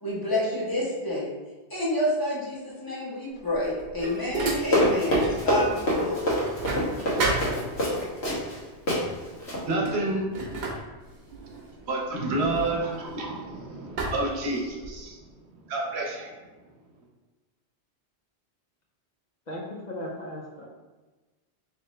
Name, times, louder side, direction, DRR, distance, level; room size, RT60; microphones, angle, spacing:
voice 1, 0.0-1.3 1.7-6.3, left 1 dB, 20° left, -7 dB, 0.9 m, -29 dB
sound 1, 3.4-5.5 5.8-8.1 9.0-9.2 9.6-13.4 14.0-15.1, right 2 dB, 50° right, 0.8 m, -33 dB
Run, 4.6-8.6 8.9-9.0 9.4-9.6, equal, 75° left, 1.3 m, -25 dB
voice 2, 7.3-16.6 17.0-17.1, right 2 dB, 75° right, -1 dB, 1.0 m, -32 dB
voice 3, 19.5-20.7, left 1 dB, 50° left, -3 dB, 0.7 m, -36 dB
3.3 x 3.1 x 3.1 m, 1.2 s
omnidirectional pair, 1.1 m